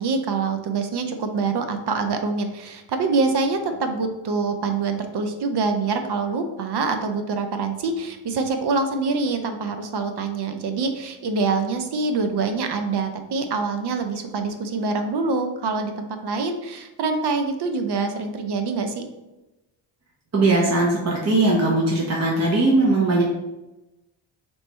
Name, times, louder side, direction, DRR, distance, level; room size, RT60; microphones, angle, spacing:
voice 1, 0.0-19.0, right 4 dB, 55° right, 6 dB, 0.7 m, -25 dB
voice 2, 20.3-23.2, right 2 dB, 35° right, -3 dB, 1.0 m, -19 dB
3.2 x 3.1 x 4.2 m, 1.0 s
cardioid pair, 85°, 47 cm